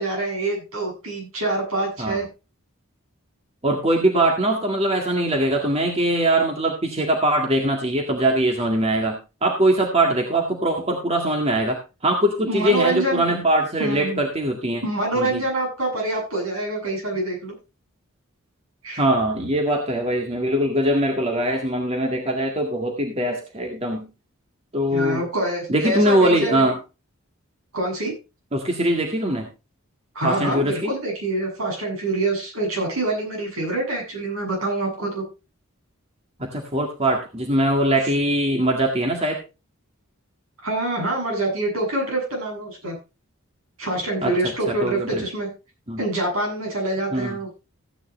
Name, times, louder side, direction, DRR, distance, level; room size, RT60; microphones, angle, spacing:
voice 1, 0.0-2.3 12.5-13.4 13.8-14.2 14.8-17.5 18.8-19.0 24.9-26.7 27.7-28.1 30.1-35.2 40.6-43.0 43.8-45.5 46.0-47.5, right 2 dB, 80° right, -1 dB, 7.9 m, -26 dB
voice 2, 3.6-14.8 15.1-15.4 19.0-24.1 24.7-25.2 25.7-26.8 28.5-29.5 30.2-30.9 36.4-39.4 44.2-45.3 45.9-46.0 47.1-47.4, right 1 dB, 30° right, 2 dB, 1.8 m, -22 dB
15.0 x 9.8 x 3.2 m, 0.28 s
head